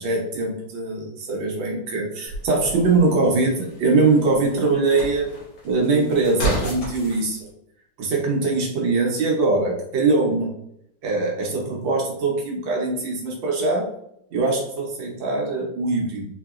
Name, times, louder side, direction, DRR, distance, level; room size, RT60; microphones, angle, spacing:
voice 1, 0.0-5.3 5.6-7.5 8.0-10.5 11.0-13.9 14.3-16.2, right 3 dB, 85° right, -1 dB, 1.7 m, -22 dB
sound 1, 2.3-7.3, right 2 dB, 90° left, 1.8 m, -32 dB
4.4 x 2.9 x 2.4 m, 0.77 s
omnidirectional pair, 2.0 m